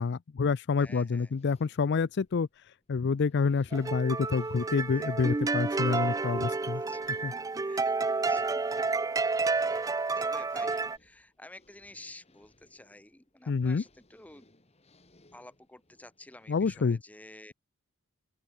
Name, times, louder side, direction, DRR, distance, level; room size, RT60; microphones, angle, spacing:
voice 1, 0.0-2.5 2.9-6.8 7.2-7.3 13.5-13.8 16.5-17.0, left 5 dB, 50° left, 0.4 m, -28 dB
voice 2, 0.8-1.3 4.9-5.4 6.3-7.1 7.6-8.6 9.6-9.9 10.2-14.4 15.3-17.5, left 1 dB, 5° left, 0.8 m, -51 dB
sound 1, 1.1-16.9, left 1 dB, 30° left, 2.6 m, -65 dB
sound 2, 3.7-11.0, right 3 dB, 15° right, 0.3 m, -30 dB
open air
head